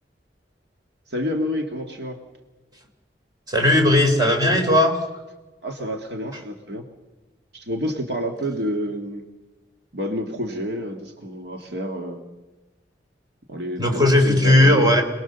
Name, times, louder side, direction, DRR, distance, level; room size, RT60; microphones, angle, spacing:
voice 1, 1.1-2.2 5.6-6.9 7.5-9.2 9.9-12.2 13.5-14.9, equal, 65° right, 3 dB, 1.8 m, -29 dB
voice 2, 3.5-5.0 13.8-15.0, left 1 dB, 25° right, 2 dB, 3.6 m, -17 dB
27.0 x 19.5 x 6.8 m, 1.2 s
head